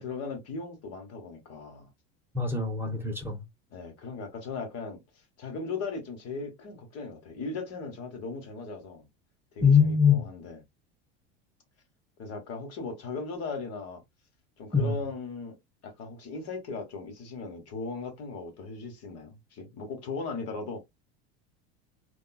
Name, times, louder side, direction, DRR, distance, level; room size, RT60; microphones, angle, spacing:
voice 1, 0.0-1.9 3.7-5.0 5.4-9.1 9.5-10.6 12.2-14.0 14.6-15.6 15.8-20.8, left 4 dB, 50° left, 1.4 m, -38 dB
voice 2, 2.3-3.4 9.6-10.2 14.7-15.0, left 6 dB, 5° right, 0.8 m, -23 dB
3.6 x 2.4 x 2.3 m
supercardioid pair, 100°, 33 cm